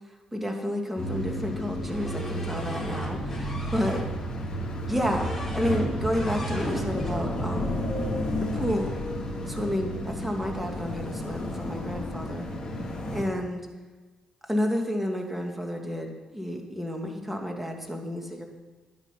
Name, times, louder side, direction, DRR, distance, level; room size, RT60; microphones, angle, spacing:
voice 1, 0.3-4.0 4.9-7.8 8.5-8.9 9.4-12.4 13.1-13.7 14.4-18.4, equal, 10° right, 2 dB, 2.4 m, -30 dB
sound 1, 1.0-13.2, equal, 35° left, 3.0 m, -32 dB
sound 2, 1.9-4.1 4.9-5.9 6.1-7.1, left 1 dB, 10° left, 3.9 m, -37 dB
11.5 x 9.3 x 5.9 m, 1.3 s
supercardioid pair, 60°, 2 cm